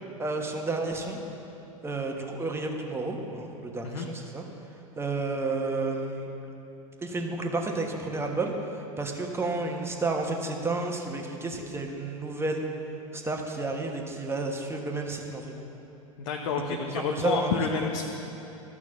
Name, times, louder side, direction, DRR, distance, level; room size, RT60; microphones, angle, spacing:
voice 1, 0.2-1.2 1.8-4.4 5.0-6.3 7.0-12.7 13.1-15.5 16.9-17.5, right 3 dB, 15° right, 2 dB, 1.3 m, -31 dB
voice 2, 16.2-18.0, left 5 dB, 65° left, 2 dB, 0.8 m, -29 dB
12.5 x 6.1 x 7.3 m, 3.0 s
figure-of-eight pair, 85°, 18 cm